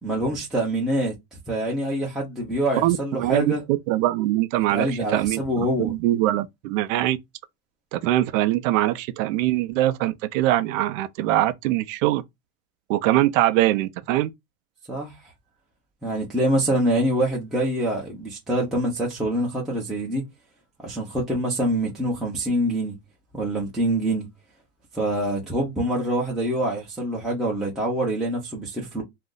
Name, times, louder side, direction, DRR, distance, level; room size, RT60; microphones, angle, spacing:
voice 1, 0.0-3.6 4.7-5.9 14.9-15.1 16.0-20.2 20.8-23.0 23.3-24.3 24.9-29.0, right 1 dB, ahead, 0.5 m, -25 dB
voice 2, 2.8-7.2 7.9-12.2 12.9-14.3, right 15 dB, 65° right, 0.5 m, -23 dB
2.5 x 2.1 x 3.7 m
supercardioid pair, 135°, 43 cm